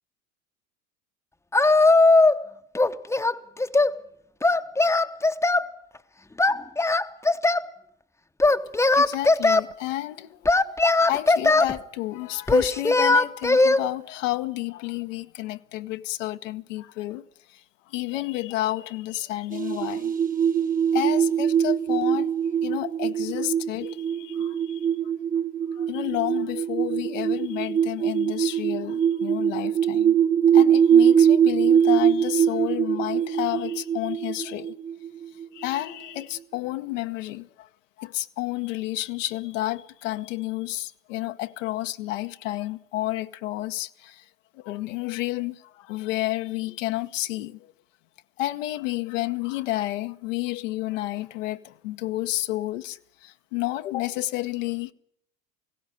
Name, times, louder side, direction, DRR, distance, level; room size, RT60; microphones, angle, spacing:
Singing, 1.5-2.4 2.7-4.0 4.4-5.7 6.4-7.7 8.4-9.6 10.5-11.7 12.5-13.8, left 2 dB, 5° left, 0.8 m, -19 dB
voice 1, 8.4-10.5 10.8-20.1 20.9-22.3 22.6-24.9 25.7-30.2 30.5-34.7 35.3-37.7 38.0-44.3 44.5-47.7 48.4-54.9, left 16 dB, 65° left, 0.9 m, -31 dB
sound 1, 19.5-35.8, right 8 dB, 20° right, 1.1 m, -22 dB
18.5 x 16.5 x 9.6 m
figure-of-eight pair, 75°, 42 cm